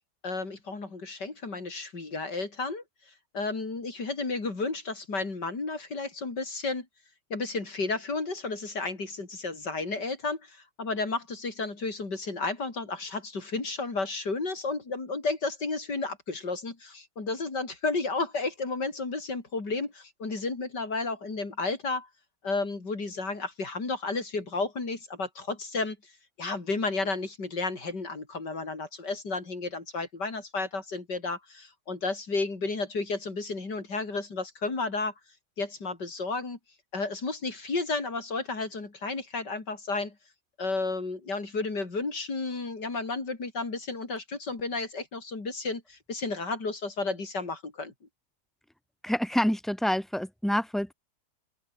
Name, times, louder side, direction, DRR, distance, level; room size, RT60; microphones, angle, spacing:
voice 1, 0.2-6.9 7.3-22.1 22.4-26.0 26.4-35.1 35.6-36.6 36.9-40.1 40.6-47.9, left 3 dB, 80° left, 4.8 m, -32 dB
voice 2, 49.0-50.9, equal, ahead, 5.2 m, -27 dB
open air
omnidirectional pair, 1.8 m